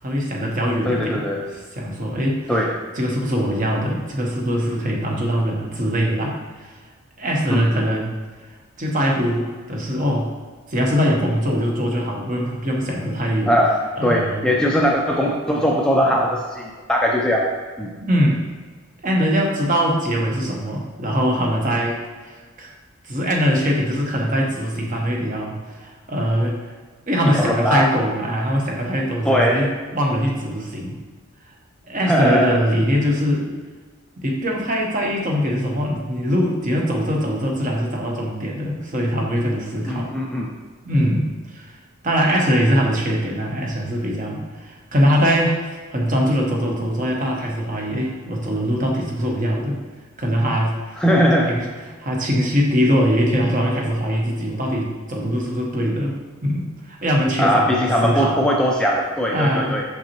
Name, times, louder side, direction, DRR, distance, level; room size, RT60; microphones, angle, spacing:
voice 1, 0.0-2.6 2.9-6.8 7.2-8.1 8.8-10.3 10.7-13.6 14.0-14.5 18.0-18.4 19.0-22.7 23.0-26.7 27.1-31.0 31.9-33.5 34.2-40.1 40.8-41.8 42.0-45.6 45.9-49.8 50.2-51.0 51.5-51.7 52.0-56.1 56.4-58.4 59.3-59.8, equal, 40° right, -1 dB, 0.9 m, -22 dB
voice 2, 0.8-1.4 2.5-2.7 7.5-7.8 13.5-13.7 14.0-17.5 17.8-17.9 27.3-27.9 29.2-29.6 32.1-32.5 39.9-40.5 51.0-51.5 57.4-59.8, equal, 5° left, -2 dB, 0.4 m, -20 dB
6.1 x 5.7 x 2.9 m, 1.5 s
head